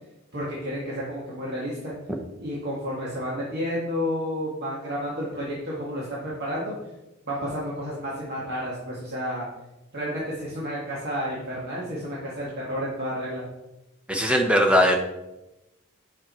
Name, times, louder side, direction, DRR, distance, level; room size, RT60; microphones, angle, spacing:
voice 1, 0.3-1.9 2.4-6.7 7.3-9.5 9.9-13.4, equal, 50° right, -6 dB, 1.9 m, -31 dB
voice 2, 14.1-15.0, equal, 5° right, 2 dB, 1.0 m, -19 dB
8.9 x 6.3 x 4.4 m, 0.96 s
head